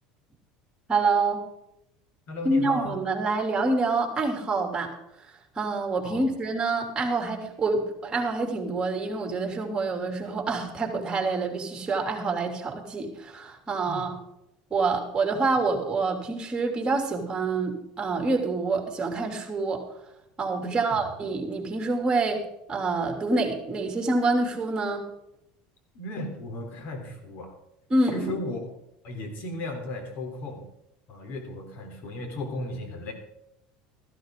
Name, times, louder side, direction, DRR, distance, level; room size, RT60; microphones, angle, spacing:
voice 1, 0.9-1.4 2.4-4.9 5.5-14.1 14.7-19.9 20.4-25.1 27.9-28.3, right 3 dB, 20° right, 3 dB, 3.2 m, -27 dB
voice 2, 2.3-3.0 6.0-6.3 13.9-14.1 20.6-21.1 25.9-27.5 28.1-28.6 29.0-30.7 31.1-33.1, left 1 dB, 60° left, 4 dB, 3.6 m, -36 dB
14.0 x 13.0 x 3.9 m, 0.83 s
supercardioid pair, 110°, 4 cm